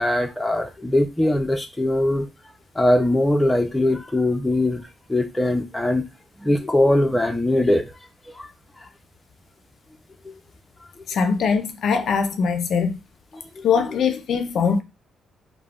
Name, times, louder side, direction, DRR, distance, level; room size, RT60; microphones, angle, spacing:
voice 1, 0.0-2.3 2.8-4.8 5.1-6.0 6.4-7.9 8.3-8.5 10.2-10.3 13.6-13.7, left 1 dB, 10° left, 0.5 m, -21 dB
voice 2, 11.1-13.0 13.6-14.8, left 6 dB, 65° left, 0.4 m, -21 dB
3.4 x 2.0 x 2.4 m
cardioid pair, 90°, 0 cm